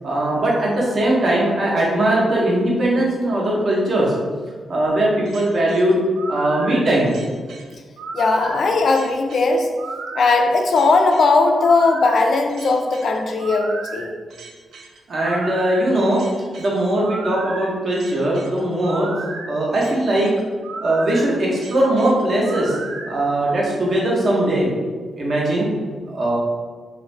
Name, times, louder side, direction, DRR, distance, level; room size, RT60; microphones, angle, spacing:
voice 1, 0.0-4.1 4.7-6.0 6.3-7.1 15.1-16.2 16.6-19.1 19.4-20.3 20.8-22.7 23.0-24.7 25.2-25.7 26.1-26.4, right 1 dB, 45° right, -4 dB, 0.8 m, -20 dB
sound 1, 5.2-23.1, right 3 dB, 75° right, 0.3 m, -34 dB
voice 2, 8.1-9.7 10.1-14.1, left 3 dB, 50° left, 3 dB, 0.3 m, -18 dB
2.5 x 2.5 x 3.1 m, 1.5 s
wide cardioid pair, 150°, 0 cm